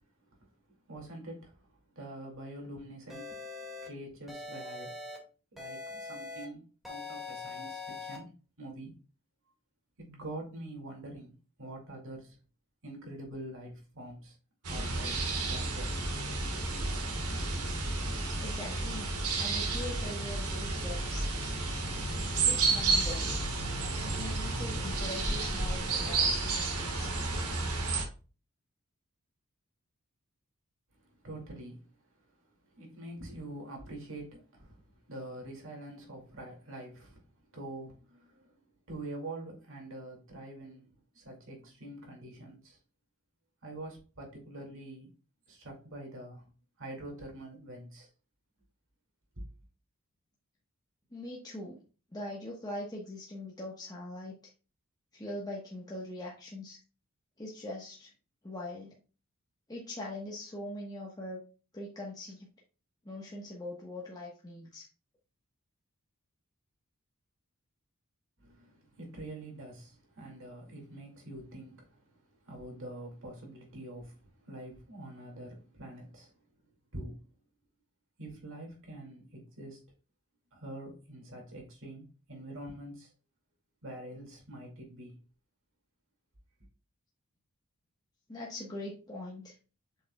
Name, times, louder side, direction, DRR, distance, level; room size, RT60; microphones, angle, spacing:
voice 1, 0.9-3.4 3.8-5.0 5.5-9.0 10.0-11.3 11.6-12.4 12.8-14.3 14.7-16.0 16.5-17.0 31.2-31.9 32.8-37.2 37.5-38.5 38.9-42.8 43.6-45.1 45.5-46.5 46.8-48.1 49.4-49.5 68.4-72.0 72.4-76.3 76.9-77.2 78.2-79.8 80.5-83.1 83.8-85.2, right 1 dB, 60° right, 2.4 m, -45 dB
sound 1, 3.1-3.9 4.3-5.2 5.6-6.4 6.8-8.2, left 3 dB, ahead, 2.1 m, -42 dB
sound 2, 14.6-28.0, right 3 dB, 85° right, 1.6 m, -31 dB
voice 2, 18.4-21.3 22.4-23.4 24.2-27.1 51.1-51.8 52.1-54.4 55.1-56.8 57.4-58.1 58.4-58.9 59.7-61.4 61.7-62.5 63.0-64.9 88.3-89.5, left 1 dB, 20° left, 1.2 m, -42 dB
7.6 x 5.5 x 2.3 m
head